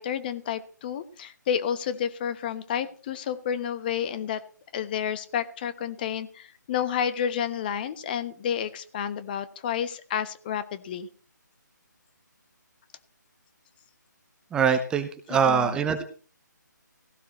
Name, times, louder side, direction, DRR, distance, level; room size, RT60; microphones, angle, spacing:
voice 1, 0.0-4.4 4.7-11.1 15.3-15.8, left 8 dB, 30° left, 14 dB, 1.0 m, -30 dB
voice 2, 14.5-16.0, right 7 dB, 10° right, 8 dB, 0.8 m, -23 dB
16.5 x 15.5 x 3.0 m, 0.39 s
figure-of-eight pair, 150°, 10 cm